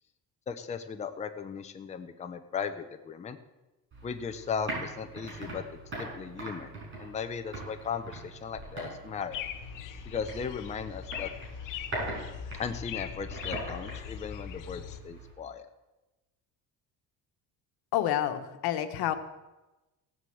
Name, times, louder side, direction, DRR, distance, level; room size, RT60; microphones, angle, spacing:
voice 1, 0.5-3.4 4.0-5.6 5.9-9.4 10.1-11.3 12.6-15.7, left 6 dB, 20° left, 7 dB, 0.7 m, -37 dB
sound 1, 3.9-15.3, right 2 dB, 30° right, 5.9 m, -42 dB
sound 2, 9.3-15.0, left 9 dB, 55° left, 1.0 m, -40 dB
voice 2, 17.9-19.1, left 12 dB, 85° left, 9 dB, 1.4 m, -28 dB
16.0 x 8.1 x 7.8 m, 1.1 s
cardioid pair, 180°, 37 cm